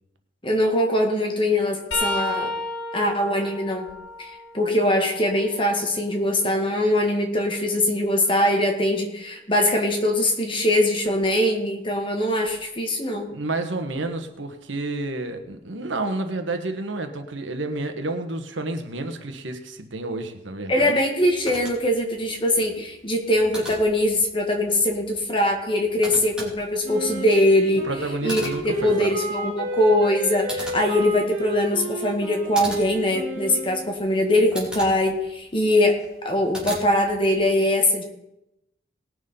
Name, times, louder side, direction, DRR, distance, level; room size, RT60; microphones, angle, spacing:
voice 1, 0.4-2.5 2.9-3.9 4.2-13.3 20.7-27.9 28.2-36.0 36.2-38.0, left 1 dB, 25° left, 2 dB, 1.9 m, -22 dB
sound 1, 1.9-5.7 6.2-8.1 11.1-11.2 12.5-12.7 14.0-14.1, left 2 dB, 70° left, 2.4 m, -34 dB
voice 2, 13.3-20.9 27.8-29.1, right 2 dB, 80° right, 7 dB, 1.3 m, -30 dB
sound 2, 21.2-37.4, right 1 dB, 5° right, 2.9 m, -41 dB
Wind instrument woodwind instrument, 26.8-33.9, right 2 dB, 45° right, 2.5 m, -33 dB
19.0 x 6.3 x 5.4 m, 0.88 s
head